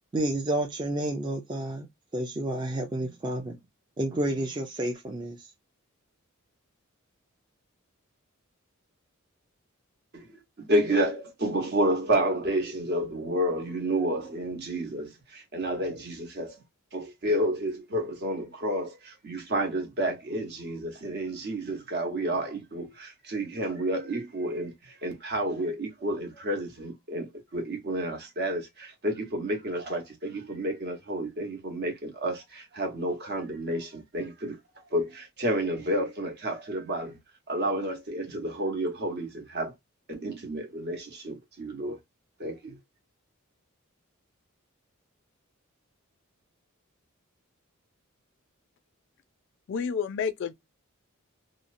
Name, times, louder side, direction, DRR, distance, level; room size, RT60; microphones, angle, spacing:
voice 1, 0.1-1.9 2.1-3.6 4.0-5.4, right 1 dB, 20° right, 0.4 m, -30 dB
voice 2, 10.1-16.6 16.9-34.6 34.9-37.2 37.5-39.7 40.1-42.0 42.4-42.8, right 1 dB, 50° right, 0.9 m, -30 dB
voice 3, 49.7-50.5, left 6 dB, 55° left, 0.3 m, -29 dB
2.7 x 2.0 x 2.5 m
head